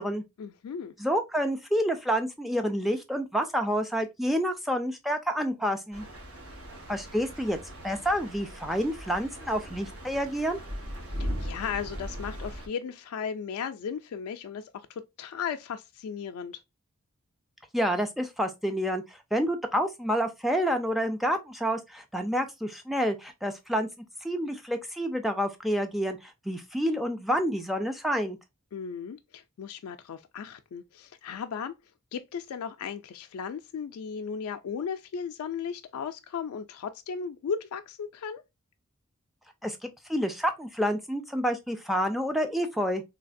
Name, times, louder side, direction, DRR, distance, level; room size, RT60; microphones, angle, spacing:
voice 1, 0.4-0.9 11.1-16.6 28.7-31.7 32.1-38.4, left 6 dB, 85° left, 0.3 m, -36 dB
voice 2, 1.0-6.1 6.9-7.6 7.8-10.6 17.7-23.9 24.2-28.4 39.6-43.0, equal, ahead, 0.3 m, -28 dB
sound 1, 5.9-12.7, equal, 80° right, 1.3 m, -39 dB
3.2 x 2.8 x 2.5 m
head